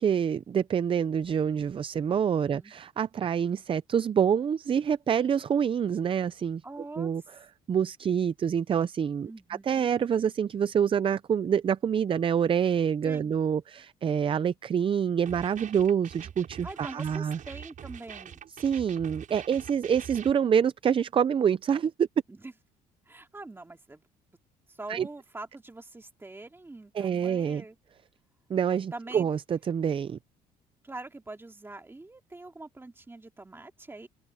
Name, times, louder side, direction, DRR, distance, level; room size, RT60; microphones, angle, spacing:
voice 1, 0.0-6.6 7.0-7.2 7.7-9.3 9.7-17.4 18.6-22.1 24.9-25.1 26.9-27.6 28.5-30.2, right 8 dB, 30° right, 0.5 m, -26 dB
voice 2, 2.3-2.7 6.6-7.1 9.3-9.9 13.0-13.3 16.6-18.4 22.3-22.5 23.1-24.0 24.7-27.8 28.9-29.3 30.8-34.1, right 2 dB, 15° right, 2.5 m, -44 dB
sound 1, 15.3-20.3, right 8 dB, 50° right, 7.0 m, -44 dB
open air
cardioid pair, 110°, 17 cm